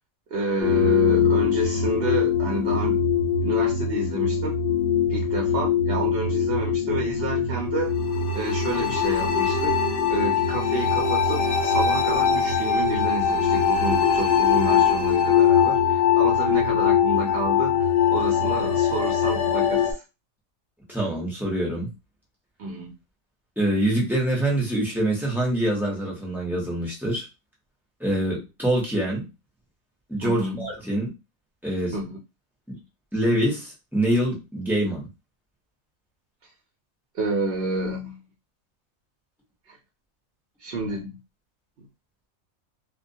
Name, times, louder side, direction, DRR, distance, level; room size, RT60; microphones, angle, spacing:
voice 1, 0.3-3.1 3.4-4.6 5.1-8.0 8.3-9.8 10.1-20.0 22.6-22.9 30.2-30.6 31.9-32.2 37.1-38.2 39.7-39.8 40.6-41.2 41.8-41.9, right 2 dB, 60° right, 0.6 m, -30 dB
sound 1, 0.6-19.9, left 7 dB, 60° left, 0.7 m, -22 dB
voice 2, 20.9-21.9 23.6-27.3 28.0-29.3 30.1-31.1 31.6-32.0 32.7-32.8 33.1-35.1, right 1 dB, ahead, 0.5 m, -25 dB
2.2 x 2.1 x 2.6 m
omnidirectional pair, 1.4 m